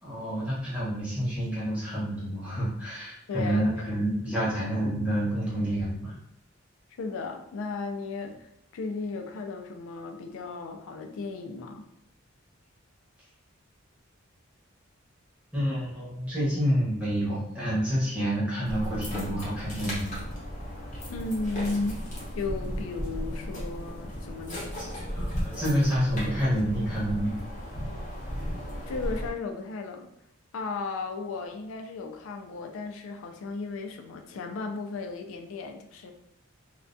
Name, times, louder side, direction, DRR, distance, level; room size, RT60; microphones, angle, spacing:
voice 1, 0.0-6.1 15.5-20.2 24.8-27.4, equal, 5° right, -9 dB, 0.8 m, -28 dB
voice 2, 3.3-3.6 3.9-4.0 7.0-11.9 21.1-22.0 22.4-24.8 28.9-30.1 30.5-36.1, left 3 dB, 75° left, 5 dB, 0.3 m, -35 dB
sound 1, 18.7-29.3, equal, 35° left, 0.7 m, -35 dB
2.3 x 2.1 x 2.5 m, 0.75 s
head